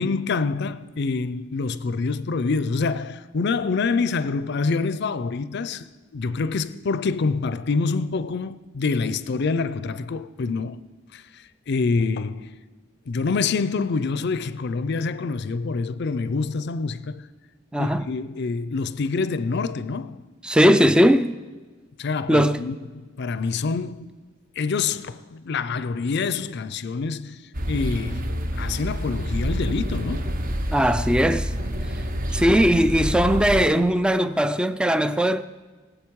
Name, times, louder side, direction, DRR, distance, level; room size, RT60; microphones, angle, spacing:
voice 1, 0.0-5.8 6.1-10.8 11.1-11.2 11.7-12.5 13.1-17.2 17.8-20.2 22.0-24.2 24.6-27.4 27.7-28.3 28.6-30.4, left 4 dB, 60° left, 0.5 m, -26 dB
voice 2, 17.7-18.1 20.4-21.3 22.3-22.6 30.7-31.5 32.3-35.4, equal, 5° right, 0.3 m, -19 dB
sound 1, 27.5-33.7, equal, 45° right, 0.8 m, -28 dB
22.0 x 8.1 x 4.7 m
head